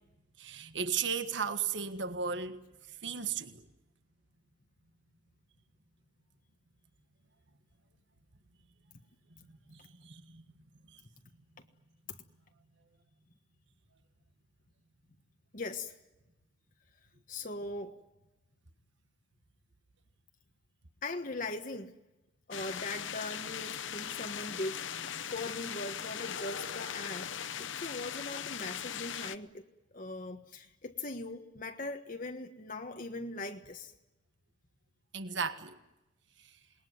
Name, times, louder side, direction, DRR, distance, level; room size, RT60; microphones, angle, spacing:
voice 1, 0.4-3.6 9.7-10.4 10.9-11.0 35.1-35.8 36.4-36.5, right 6 dB, 60° right, 1.5 m, -36 dB
voice 2, 15.5-15.9 17.3-18.0 21.0-21.9 22.5-25.0 25.3-27.3 27.6-29.6 29.9-33.9, left 2 dB, 40° left, 1.4 m, -40 dB
sound 1, 22.5-29.4, left 8 dB, 70° left, 0.9 m, -39 dB
27.5 x 20.5 x 9.5 m
head